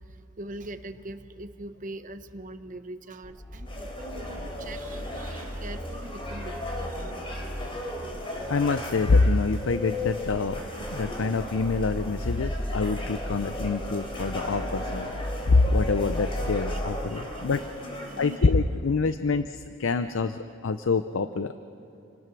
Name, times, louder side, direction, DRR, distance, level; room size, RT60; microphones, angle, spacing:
voice 1, 0.0-7.1 16.7-16.8 17.0-17.5 17.8-18.5, right 2 dB, 40° right, 10 dB, 0.9 m, -42 dB
sound 1, 3.2-17.5, equal, 5° left, 2.1 m, -37 dB
sound 2, 3.6-18.4, left 1 dB, 25° left, 3.6 m, -37 dB
voice 2, 8.5-10.6 10.9-15.1 15.5-17.6 18.2-21.5, left 3 dB, 70° left, 11 dB, 0.6 m, -25 dB
28.0 x 19.0 x 6.2 m, 2.6 s
head